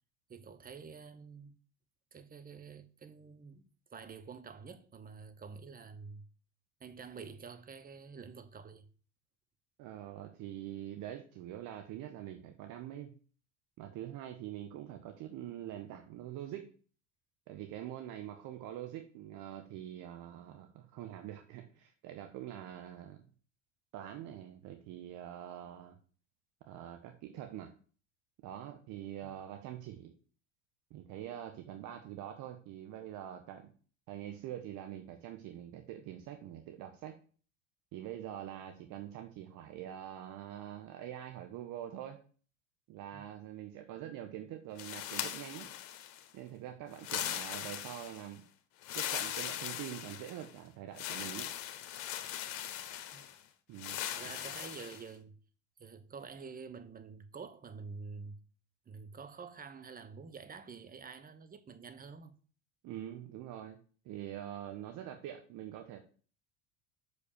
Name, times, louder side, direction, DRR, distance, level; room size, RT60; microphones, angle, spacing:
voice 1, 0.3-1.5 2.1-3.6 3.9-6.2 6.8-8.9 29.2-29.4 43.1-43.3 53.1-53.3 53.9-55.4 55.8-58.4 58.8-62.3, right 5 dB, 20° right, 1.2 m, -48 dB
voice 2, 9.8-13.1 13.8-16.7 17.5-23.2 23.9-26.0 26.7-27.7 28.4-30.1 30.9-33.7 34.1-37.2 37.9-42.2 42.9-45.7 46.3-48.4 48.9-51.5 53.7-54.0 62.8-63.8 64.0-66.0, right 11 dB, 50° right, 1.3 m, -44 dB
sound 1, 44.8-46.3 46.9-48.3 48.8-50.5 51.0-53.3 53.8-55.0, left 11 dB, 60° left, 1.3 m, -40 dB
6.5 x 5.3 x 6.8 m
hypercardioid pair, 75°, 38 cm